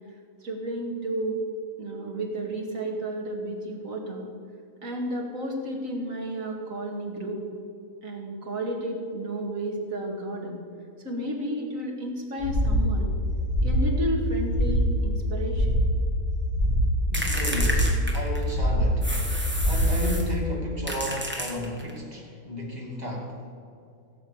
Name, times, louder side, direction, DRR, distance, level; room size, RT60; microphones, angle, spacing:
voice 1, 0.4-1.4 1.8-4.3 4.8-7.4 8.0-10.6 11.0-13.1 13.6-15.8, right 1 dB, 60° right, 0 dB, 2.5 m, -32 dB
sound 1, 12.4-12.9 13.3-13.9 14.3-14.9 15.3-15.9 16.3-16.9 17.3-17.9 18.3-18.9 19.4-20.0, equal, 25° left, 2.7 m, -24 dB
sound 2, 17.1-18.6 19.0-20.3 20.9-22.0, equal, 10° right, 1.5 m, -32 dB
voice 2, 17.1-19.1 19.6-23.4, equal, 25° right, -2 dB, 2.7 m, -33 dB
16.5 x 7.9 x 7.1 m, 2.6 s
omnidirectional pair, 1.6 m